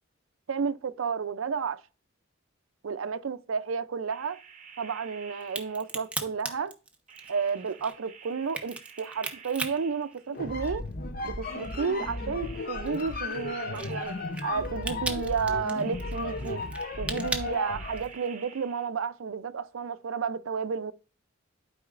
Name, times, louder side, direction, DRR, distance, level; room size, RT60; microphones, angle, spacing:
voice 1, 0.5-1.8 2.8-4.4 4.8-6.8 7.3-10.8 11.2-14.1 14.4-16.6 17.0-20.9, right 5 dB, 75° right, 0.5 m, -31 dB
sound 1, 4.1-6.2 7.1-10.5 11.4-14.8 15.8-18.9, right 6 dB, 40° right, 0.8 m, -50 dB
Crack, 5.4-10.9 11.3-18.3, right 2 dB, 5° right, 0.8 m, -38 dB
sound 2, 10.3-18.1, left 2 dB, 45° left, 0.7 m, -35 dB
11.5 x 4.9 x 2.5 m
head